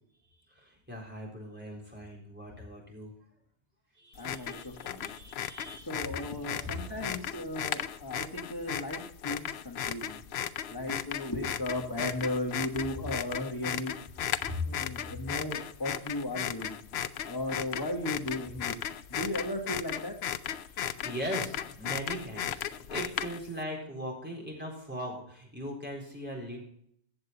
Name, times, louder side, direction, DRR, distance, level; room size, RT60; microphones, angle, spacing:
voice 1, 0.5-3.1 3.9-7.0 14.4-14.6 20.6-26.7, equal, 10° right, -1 dB, 4.1 m, -40 dB
voice 2, 4.1-5.1 5.8-10.2 10.7-14.3 14.6-16.8 17.3-18.8 19.1-20.2, left 1 dB, 20° left, 2 dB, 1.3 m, -36 dB
sound 1, 4.2-23.6, left 10 dB, 70° left, 0.8 m, -36 dB
15.0 x 7.9 x 4.0 m, 0.67 s
omnidirectional pair, 1.1 m